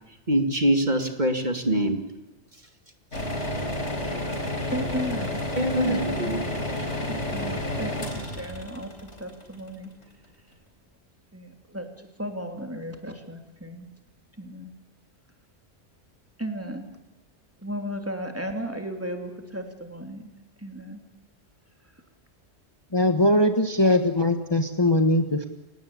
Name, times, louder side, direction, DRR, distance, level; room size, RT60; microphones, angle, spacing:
voice 1, 0.3-2.0 5.6-6.4 6.8-6.9, right 1 dB, 40° right, 6 dB, 2.3 m, -24 dB
sound 1, 3.1-10.0, left 1 dB, 80° left, 4.3 m, -31 dB
voice 2, 4.7-5.4 5.8-6.5 7.1-9.9 11.3-13.9 14.4-14.7 16.4-16.9 17.6-20.3 20.6-21.0, equal, 10° right, 4 dB, 3.1 m, -35 dB
voice 3, 22.9-25.5, left 1 dB, 25° left, 7 dB, 1.3 m, -21 dB
29.0 x 17.5 x 8.6 m, 1.0 s
omnidirectional pair, 1.2 m